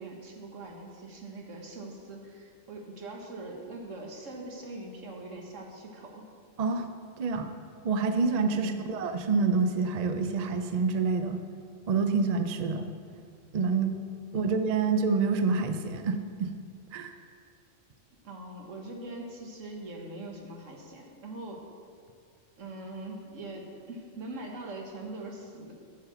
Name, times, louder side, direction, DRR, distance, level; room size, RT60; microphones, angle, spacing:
voice 1, 0.0-6.3 8.5-8.9 13.1-13.2 14.4-14.5 18.2-21.6 22.6-25.7, right 2 dB, 70° right, 1 dB, 1.7 m, -42 dB
voice 2, 7.2-7.5 7.8-11.4 11.9-12.9 13.5-13.9 14.3-16.5 16.9-17.1, right 4 dB, 50° right, 7 dB, 0.5 m, -27 dB
8.6 x 7.3 x 6.9 m, 2.2 s
omnidirectional pair, 1.4 m